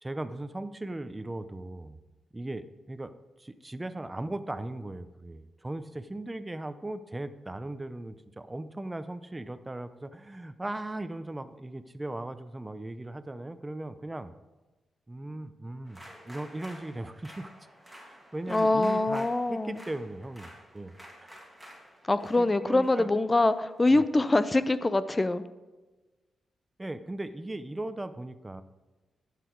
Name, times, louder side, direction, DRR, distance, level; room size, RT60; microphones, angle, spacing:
voice 1, 0.0-2.0 2.3-3.1 3.4-14.3 15.1-17.5 18.1-20.9 21.2-21.3 22.4-23.1 23.9-24.0 26.8-28.6, right 1 dB, 15° right, 12 dB, 0.7 m, -38 dB
sound 1, 15.9-24.2, equal, ahead, 2.8 m, -51 dB
voice 2, 18.5-19.8 22.1-25.4, left 2 dB, 20° left, 14 dB, 0.6 m, -24 dB
11.5 x 8.4 x 4.6 m, 1.2 s
cardioid pair, 95°, 0 cm